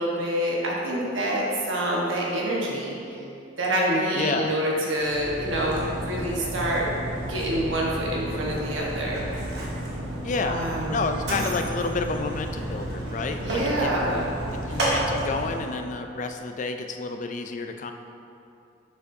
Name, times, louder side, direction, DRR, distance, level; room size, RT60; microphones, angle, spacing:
voice 1, 0.0-3.2 3.6-6.9 7.3-9.2 10.5-11.0 13.4-14.3 14.7-14.8, right 1 dB, 75° right, -4 dB, 1.3 m, -27 dB
voice 2, 4.1-4.6 10.2-13.9 14.5-17.9, left 4 dB, 40° left, 6 dB, 0.3 m, -30 dB
Mechanisms, 5.0-15.7, right 1 dB, 55° right, 1.4 m, -31 dB
7.0 x 6.8 x 2.7 m, 2.7 s
head